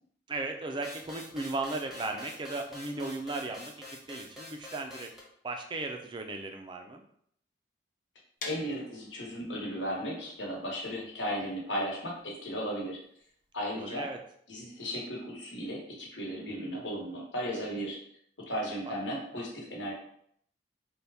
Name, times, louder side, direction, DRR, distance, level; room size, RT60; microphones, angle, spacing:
voice 1, 0.3-5.1 5.4-7.0 13.7-14.2 16.2-16.9 18.9-19.0, right 2 dB, 25° right, 4 dB, 0.4 m, -37 dB
sound 1, 0.8-5.2, left 1 dB, ahead, 0.7 m, -46 dB
voice 2, 8.4-13.0 13.5-14.1 14.5-18.0 18.5-19.9, equal, 70° left, -3 dB, 1.2 m, -35 dB
sound 2, 8.4-14.2, left 3 dB, 40° left, 0.7 m, -48 dB
4.1 x 2.2 x 3.4 m, 0.67 s
head